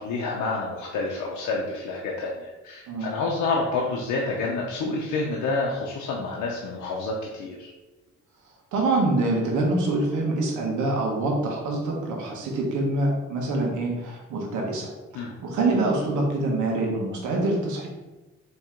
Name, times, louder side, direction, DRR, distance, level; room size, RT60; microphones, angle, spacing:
voice 1, 0.0-7.7 15.1-15.3, left 3 dB, 85° left, -2 dB, 0.7 m, -28 dB
voice 2, 8.7-17.9, right 2 dB, 85° right, 0 dB, 1.2 m, -25 dB
4.4 x 3.0 x 3.7 m, 1.1 s
cardioid pair, 80°, 29 cm